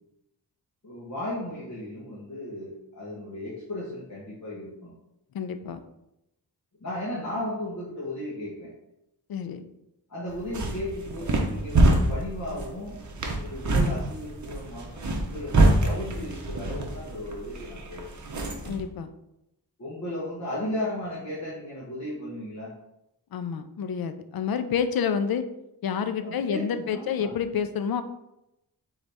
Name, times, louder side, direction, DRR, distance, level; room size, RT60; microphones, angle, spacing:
voice 1, 0.8-4.9 6.8-8.7 10.1-12.9 13.3-18.0 19.8-22.7 26.2-27.3, left 1 dB, 45° left, -7 dB, 1.1 m, -35 dB
voice 2, 5.3-5.8 9.3-9.6 18.6-19.1 23.3-25.4 25.8-28.0, left 7 dB, 60° left, 10 dB, 0.5 m, -28 dB
sound 1, 10.3-18.8, right 2 dB, 45° right, 0.8 m, -26 dB
4.0 x 3.9 x 3.4 m, 0.87 s
wide cardioid pair, 135°, 40 cm